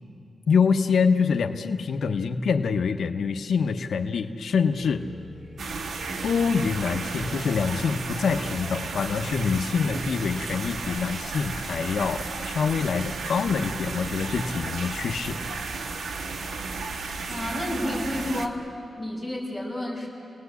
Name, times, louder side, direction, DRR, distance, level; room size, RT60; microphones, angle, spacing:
voice 1, 0.5-5.0 6.2-15.4, left 5 dB, 70° left, 5 dB, 0.9 m, -25 dB
sound 1, 4.8-10.5, equal, 40° right, 3.0 m, -46 dB
sound 2, 5.6-18.5, right 4 dB, 85° right, 1.5 m, -33 dB
voice 2, 17.3-18.6 19.0-20.1, left 1 dB, 10° right, -4 dB, 7.5 m, -30 dB
30.0 x 19.0 x 8.3 m, 2.6 s
wide cardioid pair, 150°, 0 cm